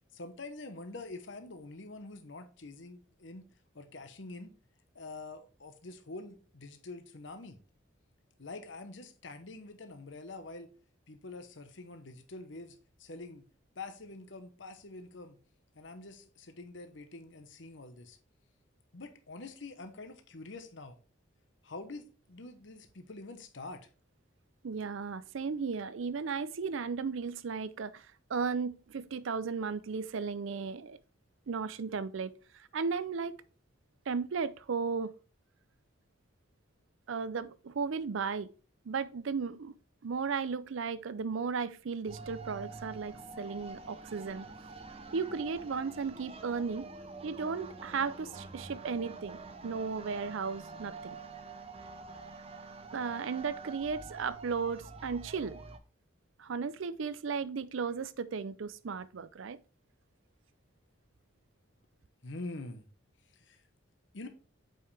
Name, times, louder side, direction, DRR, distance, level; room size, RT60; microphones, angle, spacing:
voice 1, 0.1-3.4 3.7-4.5 4.9-7.6 8.4-10.7 11.1-13.5 13.8-15.4 15.7-18.2 18.9-21.0 21.6-23.9 62.2-62.9 63.3-63.6 64.1-64.3, left 2 dB, 65° left, 1.0 m, -46 dB
voice 2, 24.6-28.0 28.3-31.0 31.5-32.3 32.7-33.3 34.1-35.1 37.1-38.5 38.9-39.7 40.0-44.4 45.1-46.9 47.2-51.2 52.9-55.6 56.4-59.6, right 5 dB, 75° right, 0.5 m, -35 dB
sound 1, 42.1-55.8, right 3 dB, 30° right, 0.6 m, -47 dB
7.6 x 5.3 x 3.3 m
head